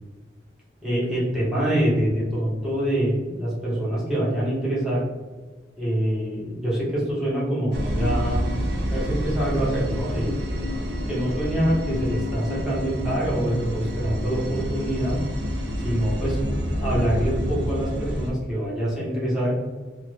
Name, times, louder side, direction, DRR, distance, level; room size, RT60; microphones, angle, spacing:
voice 1, 0.8-5.0 5.8-8.4 8.9-10.3 11.1-15.2 15.8-19.5, right 1 dB, 5° right, -8 dB, 1.1 m, -25 dB
sound 1, 7.7-18.3, equal, 65° right, 0.6 m, -28 dB
2.6 x 2.5 x 3.3 m, 1.3 s
head